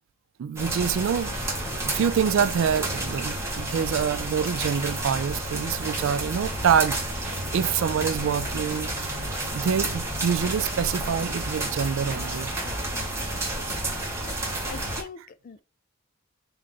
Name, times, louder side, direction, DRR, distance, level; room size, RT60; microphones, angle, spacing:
voice 1, 0.4-1.4 1.8-9.2 9.5-12.5, right 7 dB, 65° right, 0.3 m, -26 dB
sound 1, 0.6-15.0, right 1 dB, 15° right, 0.9 m, -30 dB
voice 2, 13.0-13.7 14.7-15.6, left 5 dB, 40° left, 0.3 m, -44 dB
3.8 x 2.6 x 3.2 m
head